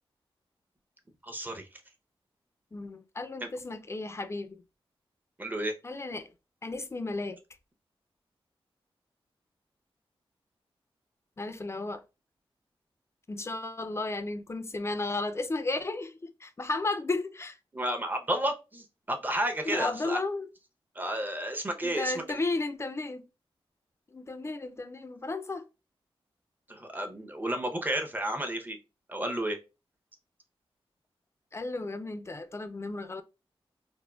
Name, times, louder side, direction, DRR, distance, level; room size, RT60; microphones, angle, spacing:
voice 1, 1.2-1.8 3.4-3.5 5.4-5.7 17.7-20.2 20.9-22.4 26.7-28.8 29.1-29.6, right 1 dB, 20° right, 0.6 m, -32 dB
voice 2, 2.7-4.6 5.8-6.3 6.6-7.4 11.4-12.0 13.3-17.6 19.7-20.5 21.8-23.3 24.1-25.7 31.5-33.2, left 2 dB, 25° left, 0.4 m, -34 dB
3.4 x 2.1 x 2.2 m
cardioid pair, 65°, 10 cm